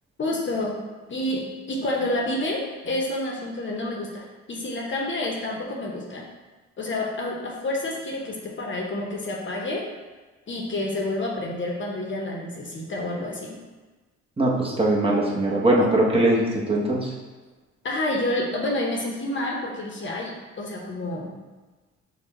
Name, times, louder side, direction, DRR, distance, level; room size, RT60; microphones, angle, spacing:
voice 1, 0.2-0.8 1.1-6.2 6.8-9.8 10.5-13.6 17.8-21.3, left 1 dB, 40° left, -1 dB, 0.8 m, -29 dB
voice 2, 14.4-17.1, right 1 dB, 20° right, -4 dB, 0.9 m, -21 dB
5.6 x 2.3 x 4.0 m, 1.3 s
cardioid pair, 90°, 30 cm